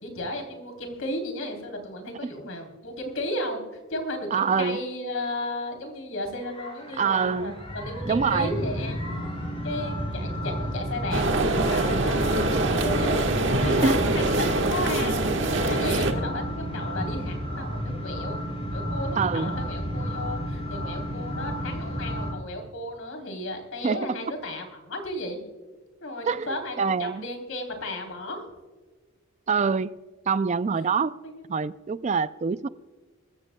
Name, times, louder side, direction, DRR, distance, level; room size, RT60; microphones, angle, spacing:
voice 1, 0.0-3.6 3.9-9.1 9.6-12.3 12.8-13.2 13.5-18.4 18.7-25.4 26.0-28.5 31.2-31.4, left 1 dB, 80° left, 3.4 m, -34 dB
voice 2, 4.3-4.8 7.0-7.5 8.1-8.5 13.8-14.0 19.2-19.5 23.8-24.1 26.3-26.5 26.8-27.3 29.5-30.0 30.3-31.1 31.5-32.7, right 5 dB, 35° right, 0.3 m, -25 dB
sound 1, 6.4-22.3, equal, 25° left, 5.1 m, -32 dB
sound 2, 11.1-16.1, right 2 dB, 60° right, 1.3 m, -24 dB
23.5 x 14.5 x 2.2 m
head